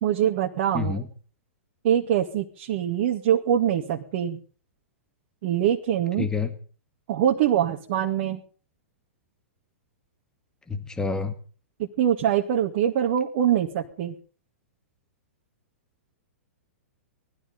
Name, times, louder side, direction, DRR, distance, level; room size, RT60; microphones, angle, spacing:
voice 1, 0.0-1.0 1.8-4.4 5.4-6.3 7.1-8.4 11.8-14.1, right 10 dB, 55° right, 1 dB, 2.3 m, -24 dB
voice 2, 0.7-1.1 6.2-6.5 10.7-11.4, left 4 dB, 10° left, 8 dB, 2.1 m, -28 dB
19.5 x 13.5 x 5.4 m, 0.42 s
hypercardioid pair, 110°, 7 cm